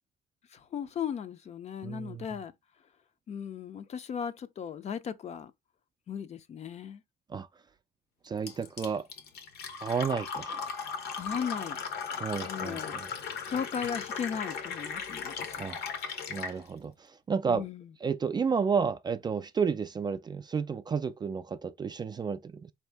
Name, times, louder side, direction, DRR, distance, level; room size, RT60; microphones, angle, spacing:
voice 1, 0.5-2.5 3.3-5.5 6.1-7.0 11.2-11.8 12.5-13.0 13.5-15.6 17.5-17.9, left 7 dB, 40° left, 0.5 m, -36 dB
voice 2, 1.8-2.3 7.3-7.5 8.2-9.1 9.8-10.6 12.1-13.1 15.6-15.8 16.3-16.9 17.3-17.6 18.0-22.7, right 6 dB, 25° right, 0.3 m, -31 dB
Fill (with liquid), 8.5-16.6, left 6 dB, 70° left, 0.9 m, -37 dB
4.2 x 2.7 x 3.3 m
cardioid pair, 110°, 17 cm